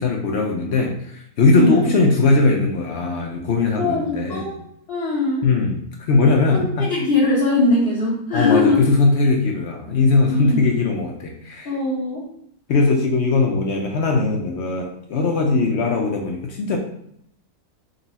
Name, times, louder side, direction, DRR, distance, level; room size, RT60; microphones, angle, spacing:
voice 1, 0.0-4.5 5.4-5.8 6.1-6.9 8.3-11.7 12.7-16.8, left 3 dB, 65° left, 1 dB, 0.7 m, -19 dB
voice 2, 1.5-1.8 3.8-5.5 6.5-8.8 10.3-10.6 11.6-12.3, left 2 dB, 45° left, -8 dB, 1.2 m, -21 dB
3.9 x 2.3 x 4.0 m, 0.71 s
omnidirectional pair, 1.6 m